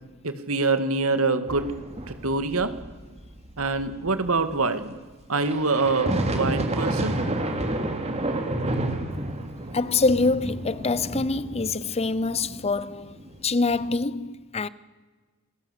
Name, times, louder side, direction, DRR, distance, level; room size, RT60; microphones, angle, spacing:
voice 1, 0.2-1.7 2.1-2.7 3.6-4.9 5.3-7.2, right 3 dB, 75° right, 2.3 m, -25 dB
sound 1, 1.5-4.6 5.3-14.0, right 1 dB, 30° right, 3.0 m, -30 dB
voice 2, 9.7-14.7, left 3 dB, 30° left, 0.7 m, -25 dB
28.0 x 19.5 x 8.3 m
head